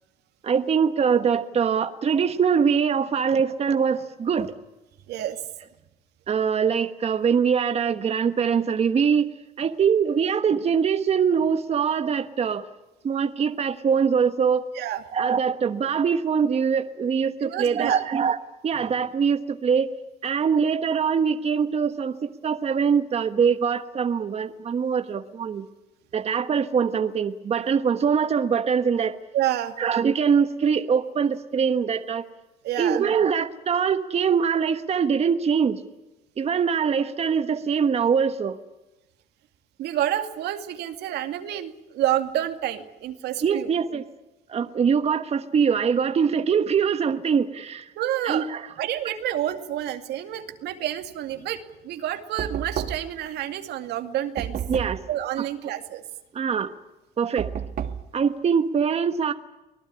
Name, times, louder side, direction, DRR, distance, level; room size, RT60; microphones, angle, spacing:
voice 1, 0.4-4.5 6.3-9.3 9.6-12.7 13.0-14.7 15.1-18.4 18.6-19.9 20.2-25.7 26.1-29.2 29.8-32.3 32.8-35.8 36.4-38.6 43.4-44.0 44.5-47.9 48.2-48.6 54.7-55.0 56.3-56.7 57.2-57.5 58.1-59.3, right 6 dB, 40° right, 8 dB, 1.3 m, -23 dB
voice 2, 5.1-5.4 14.7-15.0 17.4-18.0 29.3-29.7 32.6-33.1 39.8-43.7 48.0-48.5 48.8-54.6 55.1-56.0, right 12 dB, 75° right, 7 dB, 2.4 m, -29 dB
Knock, 52.4-53.2 54.4-55.1 57.4-58.1, right 8 dB, 60° right, 1.9 m, -31 dB
25.0 x 18.5 x 9.8 m, 1.0 s
cardioid pair, 110°, 17 cm